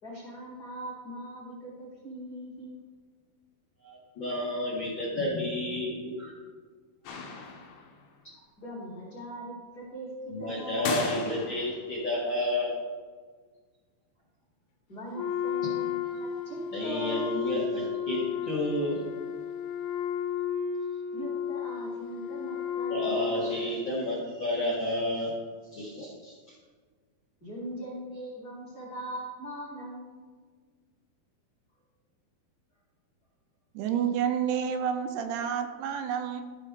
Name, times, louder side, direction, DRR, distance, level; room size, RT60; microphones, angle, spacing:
voice 1, 0.0-2.8 8.6-11.0 14.9-17.4 21.1-23.5 27.4-30.3, right 1 dB, 30° left, -6 dB, 1.8 m, -40 dB
voice 2, 3.8-6.3 10.3-12.7 16.5-19.0 22.9-25.3 25.7-26.5, left 1 dB, 50° left, -6 dB, 1.5 m, -31 dB
sound 1, 7.1-8.0 10.9-11.9, left 5 dB, 70° left, 2.4 m, -34 dB
Wind instrument woodwind instrument, 15.1-24.0, left 7 dB, 85° left, 2.7 m, -33 dB
voice 3, 33.8-36.4, right 8 dB, 85° right, 7 dB, 2.6 m, -29 dB
13.5 x 5.5 x 3.8 m, 1.5 s
omnidirectional pair, 4.6 m